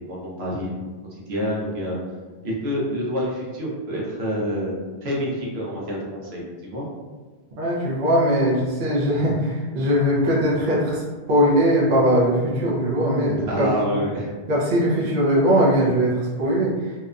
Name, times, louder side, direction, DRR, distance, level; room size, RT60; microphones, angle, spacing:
voice 1, 0.1-0.7 1.1-2.0 2.4-4.7 5.0-6.9 13.5-14.3, equal, 80° right, -4 dB, 1.0 m, -27 dB
voice 2, 7.6-11.0 11.3-14.0 14.5-16.8, equal, 60° right, -4 dB, 0.7 m, -20 dB
2.8 x 2.1 x 2.4 m, 1.3 s
omnidirectional pair, 1.1 m